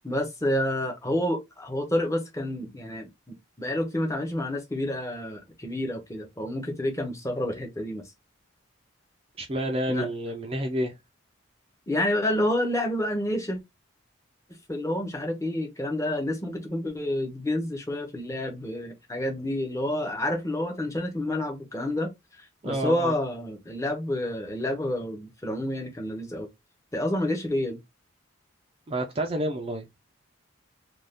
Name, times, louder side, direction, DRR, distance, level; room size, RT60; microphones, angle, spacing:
voice 1, 0.0-8.0 9.9-10.1 11.9-13.6 14.7-22.1 22.4-26.5 26.9-27.8, left 1 dB, 15° left, 0.6 m, -29 dB
voice 2, 9.4-10.9 22.6-23.1 28.9-29.8, right 1 dB, 30° right, 0.4 m, -29 dB
2.5 x 2.3 x 3.4 m
head